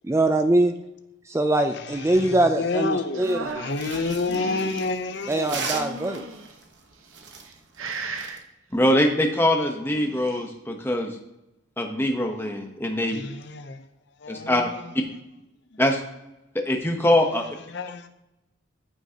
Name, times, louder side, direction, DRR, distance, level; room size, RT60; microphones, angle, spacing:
voice 1, 0.0-0.7 1.3-3.7 5.3-6.3, right 1 dB, 15° right, 0.3 m, -22 dB
voice 2, 1.7-3.3 3.6-5.6 13.1-13.8 14.2-14.9 17.7-18.1, left 3 dB, 55° left, 0.7 m, -29 dB
sound 1, 3.1-4.9 5.7-6.5 7.2-7.5 7.8-8.4 9.7-10.5, right 3 dB, 85° right, 1.0 m, -36 dB
sound 2, 3.2-8.4, right 4 dB, 55° right, 1.0 m, -37 dB
voice 3, 8.7-11.1 11.8-13.2 14.3-14.6 15.8-16.0 16.5-17.4, left 1 dB, 10° left, 0.9 m, -23 dB
14.0 x 6.0 x 2.9 m
head